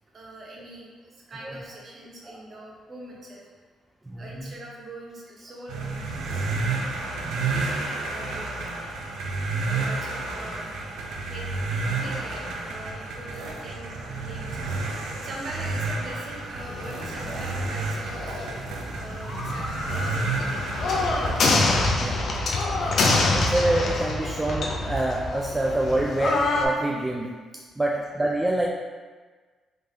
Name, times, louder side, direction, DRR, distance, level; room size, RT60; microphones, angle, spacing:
voice 1, 0.1-3.5 4.2-6.5 7.5-8.5 9.3-10.7 11.1-14.7 15.2-18.4 18.9-21.0 27.9-28.0, right 1 dB, 45° right, -3 dB, 0.9 m, -42 dB
voice 2, 4.0-4.5 7.2-7.9 8.2-8.4 20.1-20.5 21.1-21.2 21.9-22.3 22.7-22.9 23.3-27.3 27.8-28.7, right 1 dB, 15° right, -2 dB, 0.3 m, -27 dB
sound 1, 5.7-21.6, right 3 dB, 85° right, 0.5 m, -31 dB
sound 2, 16.6-26.7, left 2 dB, 60° left, 0.5 m, -26 dB
3.4 x 3.3 x 2.7 m, 1.4 s
cardioid pair, 90°, 0 cm